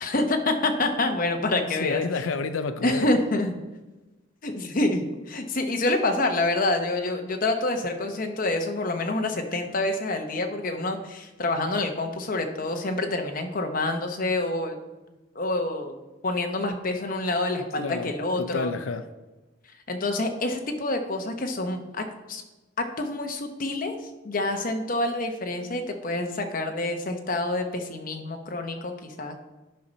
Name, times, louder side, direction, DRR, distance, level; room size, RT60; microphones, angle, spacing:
voice 1, 0.0-2.0 2.8-3.5 4.4-14.7 15.3-16.0 16.2-18.7 19.9-22.4 22.8-29.3, left 2 dB, 45° left, 0.9 m, -27 dB
voice 2, 1.7-3.1 17.8-19.1, left 4 dB, 90° left, 0.5 m, -30 dB
10.0 x 5.5 x 4.0 m
head